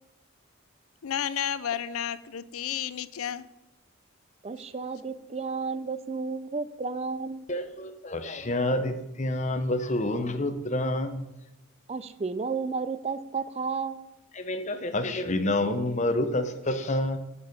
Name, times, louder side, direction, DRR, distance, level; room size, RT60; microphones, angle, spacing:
voice 1, 1.0-3.5, left 9 dB, 80° left, 16 dB, 0.5 m, -31 dB
voice 2, 4.4-7.5 11.9-14.1, right 4 dB, 30° right, 13 dB, 0.4 m, -32 dB
voice 3, 7.5-11.2 14.3-17.2, left 1 dB, 30° left, 8 dB, 0.8 m, -28 dB
8.1 x 5.5 x 6.5 m, 0.91 s
head